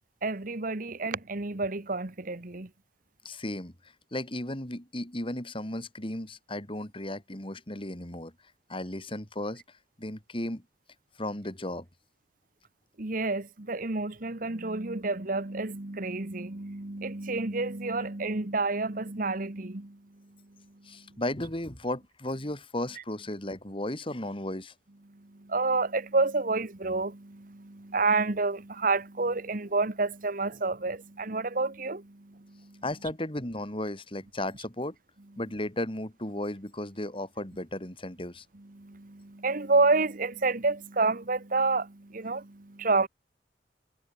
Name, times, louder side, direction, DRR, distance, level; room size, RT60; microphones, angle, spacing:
voice 1, 0.2-2.7 13.0-20.0 25.1-32.8 38.6-43.1, right 3 dB, 50° right, 1.3 m, -29 dB
voice 2, 3.2-3.7 4.1-8.3 8.7-9.6 10.0-10.6 11.2-11.9 20.8-24.7 32.8-35.0 35.4-38.4, left 1 dB, 30° left, 4.0 m, -35 dB
head